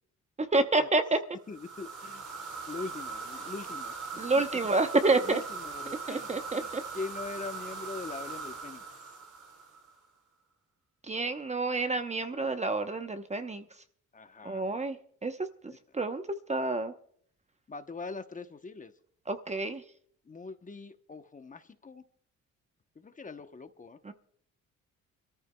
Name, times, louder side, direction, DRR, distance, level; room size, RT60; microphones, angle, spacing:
voice 1, 0.4-1.2 4.2-5.4 6.1-6.8 11.1-13.6 14.4-15.0 15.2-15.4 15.6-16.2 16.5-16.9 19.3-19.8 24.0-24.1, right 3 dB, 20° right, 9 dB, 0.9 m, -28 dB
voice 2, 1.5-2.2 2.7-4.2 5.2-6.3 6.6-8.8 14.1-14.7 17.7-18.9 20.3-22.0 23.0-24.0, left 4 dB, 25° left, 8 dB, 0.9 m, -42 dB
sound 1, 1.5-10.0, right 4 dB, 90° right, 3.1 m, -40 dB
27.0 x 13.5 x 2.3 m, 0.62 s
cardioid pair, 90°, 30 cm